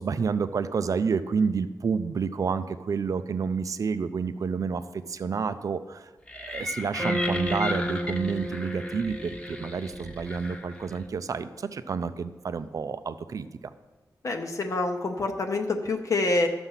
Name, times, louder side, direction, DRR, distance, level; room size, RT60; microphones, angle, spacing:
voice 1, 0.0-13.5, right 5 dB, 50° right, 12 dB, 0.5 m, -29 dB
sound 1, 6.3-11.1, left 2 dB, 15° left, 0.9 m, -36 dB
sound 2, 7.0-11.3, equal, 20° right, 1.2 m, -33 dB
voice 2, 14.2-16.5, left 2 dB, 50° left, 3 dB, 0.8 m, -26 dB
12.0 x 7.0 x 5.7 m, 1.2 s
wide cardioid pair, 150°, 7 cm